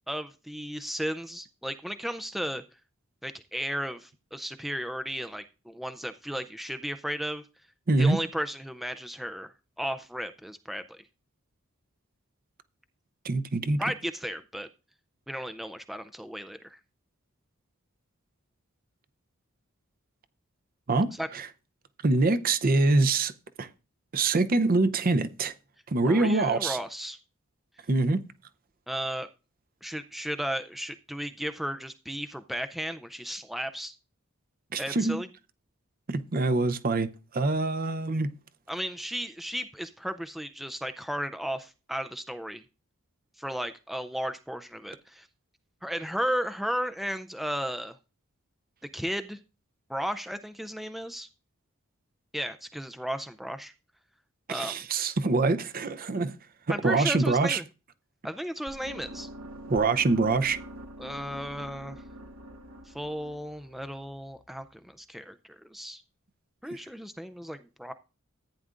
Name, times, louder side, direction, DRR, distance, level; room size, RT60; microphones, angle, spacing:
voice 1, 0.1-2.6 3.2-7.5 8.0-9.5 9.8-11.0 13.8-14.7 15.3-16.8 21.2-21.3 26.0-27.2 28.9-29.3 29.8-34.0 34.8-35.3 38.7-42.6 43.4-45.3 45.8-48.0 48.9-49.4 49.9-51.3 52.3-53.7 54.5-54.9 56.7-57.6 58.2-59.3 61.0-62.0 62.9-66.0 66.6-67.9, equal, ahead, 0.4 m, -34 dB
voice 2, 7.9-8.2 13.2-13.8 20.9-21.5 22.0-23.3 23.6-23.7 24.1-25.5 25.9-26.8 27.9-28.2 34.7-35.2 36.1-38.3 54.5-56.3 56.8-57.6 59.7-60.6 66.7-66.8, right 3 dB, 40° right, 0.6 m, -25 dB
sound 1, 58.7-64.7, right 1 dB, 70° right, 1.3 m, -45 dB
14.5 x 9.3 x 2.5 m
head